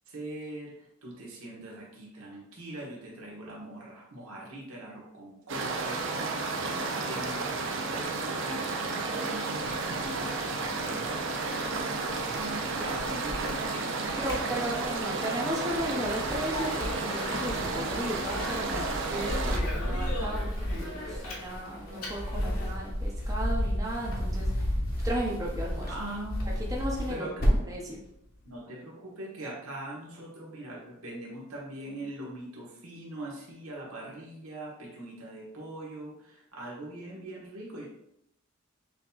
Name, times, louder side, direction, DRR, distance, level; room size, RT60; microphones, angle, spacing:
voice 1, 0.1-0.7 1.0-15.3 25.9-26.6 27.1-27.6 28.4-37.9, right 1 dB, 85° right, -3 dB, 1.2 m, -42 dB
sound 1, 5.5-19.6, right 3 dB, 55° right, 0.5 m, -32 dB
sound 2, 9.6-11.8 12.1-13.7 14.0-15.1 15.6-27.8, equal, 45° left, 1.0 m, -33 dB
voice 2, 14.1-24.7 25.0-26.1 26.7-28.0, right 1 dB, 15° right, -3 dB, 0.6 m, -35 dB
Speech, 16.2-22.7, left 1 dB, 75° left, 1.2 m, -40 dB
6.1 x 2.7 x 2.4 m, 0.78 s
head